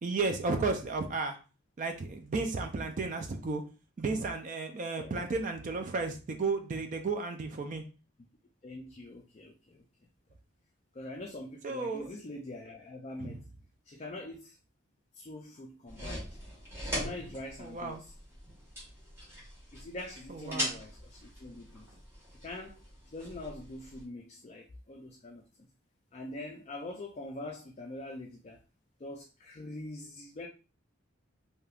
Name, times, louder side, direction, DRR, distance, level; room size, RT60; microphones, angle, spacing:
voice 1, 0.0-1.4 1.8-3.6 4.0-7.8 11.6-12.1 13.2-13.4 17.6-18.0 20.5-20.7, right 3 dB, 40° right, 6 dB, 0.4 m, -33 dB
voice 2, 8.6-9.8 10.9-13.4 13.9-14.6 15.1-16.4 16.8-18.1 19.7-21.9 22.3-22.8 23.1-25.5 26.1-28.6 29.0-30.5, left 2 dB, 30° left, 1 dB, 0.4 m, -44 dB
sound 1, 15.9-24.0, equal, 10° right, 1.3 m, -41 dB
3.4 x 2.7 x 2.3 m, 0.33 s
head